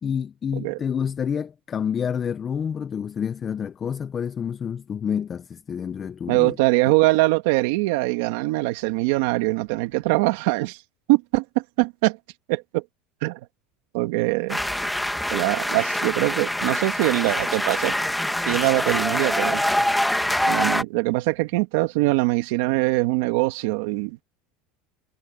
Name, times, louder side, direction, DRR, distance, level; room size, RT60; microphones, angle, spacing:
voice 1, 0.0-6.6, left 7 dB, 20° left, 0.5 m, -28 dB
voice 2, 6.3-10.8 11.1-12.2 12.5-12.8 13.2-13.4 13.9-14.6 15.3-17.9 18.5-19.6 20.4-24.2, right 21 dB, 70° right, 1.9 m, -22 dB
sound 1, 14.5-20.8, left 1 dB, ahead, 1.5 m, -24 dB
cardioid pair, 160°, 0 cm